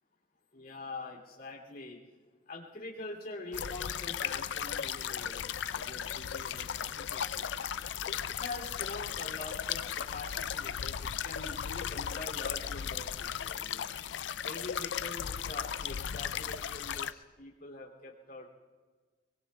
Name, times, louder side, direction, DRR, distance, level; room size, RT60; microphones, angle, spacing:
voice 1, 0.5-2.0 2.5-7.5 8.3-13.8 14.4-18.5, left 2 dB, 55° left, -1 dB, 2.8 m, -45 dB
sound 1, 3.5-17.1, left 8 dB, 75° left, 0.4 m, -36 dB
24.0 x 23.5 x 2.3 m, 1.4 s
head